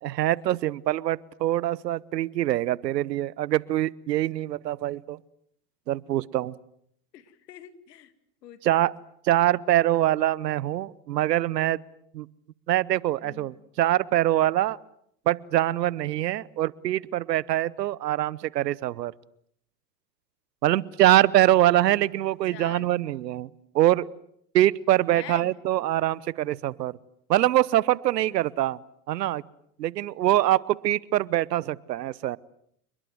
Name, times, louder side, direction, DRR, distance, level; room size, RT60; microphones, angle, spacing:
voice 1, 0.0-5.2 5.9-6.5 8.6-8.9 9.3-11.8 12.1-12.3 12.7-14.8 15.3-19.1 20.6-23.5 23.7-24.1 24.5-26.9 27.3-28.8 29.1-29.4 29.8-32.4, right 14 dB, 85° right, 23 dB, 1.0 m, -24 dB
voice 2, 7.1-8.1 8.4-8.9 13.2-13.6 22.5-22.9 25.1-25.5, left 11 dB, 80° left, 12 dB, 2.5 m, -45 dB
29.0 x 22.0 x 8.0 m, 0.70 s
hypercardioid pair, 95°, 48 cm